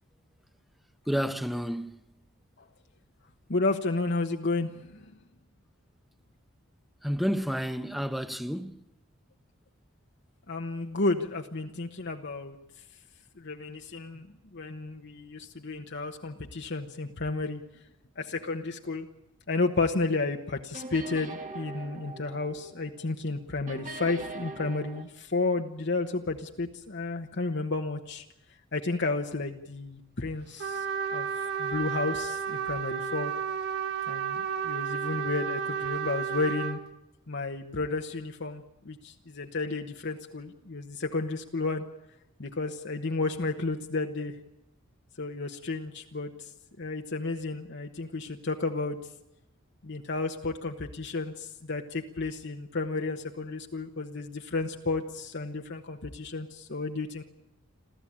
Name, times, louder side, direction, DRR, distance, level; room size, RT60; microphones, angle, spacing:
voice 1, 1.1-1.9 7.0-8.8, equal, ahead, 0.9 m, -30 dB
voice 2, 3.5-5.1 10.5-12.6 13.4-14.3 14.5-17.6 18.2-19.1 19.5-28.2 28.7-30.8 31.1-31.3 31.6-33.3 34.1-34.4 34.6-36.8 37.3-41.9 42.4-44.3 45.2-46.3 46.8-49.0 49.8-57.2, left 3 dB, 60° left, 1.2 m, -32 dB
sound 1, 20.7-23.4 23.7-25.0, right 2 dB, 40° right, 1.8 m, -42 dB
Trumpet, 30.6-36.8, right 8 dB, 55° right, 1.8 m, -32 dB
27.5 x 14.0 x 8.7 m
head